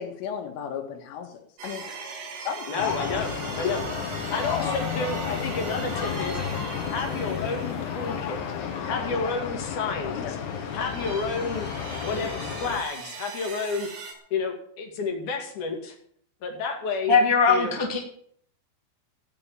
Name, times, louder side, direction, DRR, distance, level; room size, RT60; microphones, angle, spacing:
voice 1, 0.0-2.0 2.5-3.7 10.1-10.3, left 8 dB, 90° left, 4 dB, 4.3 m, -35 dB
sound 1, 1.6-9.5 10.0-14.1, right 5 dB, 60° right, 4.2 m, -40 dB
voice 2, 2.7-3.3 3.6-3.8 4.3-6.4 6.9-8.4 8.9-10.4 10.7-11.7 12.0-13.9 14.3-15.9 16.4-17.2 17.5-17.7, left 4 dB, 50° left, 2 dB, 3.2 m, -30 dB
sound 2, 2.8-12.8, left 7 dB, 65° left, 2.1 m, -32 dB
voice 3, 17.1-18.0, left 4 dB, 40° right, 0 dB, 0.3 m, -20 dB
15.5 x 6.2 x 9.3 m, 0.64 s
omnidirectional pair, 5.5 m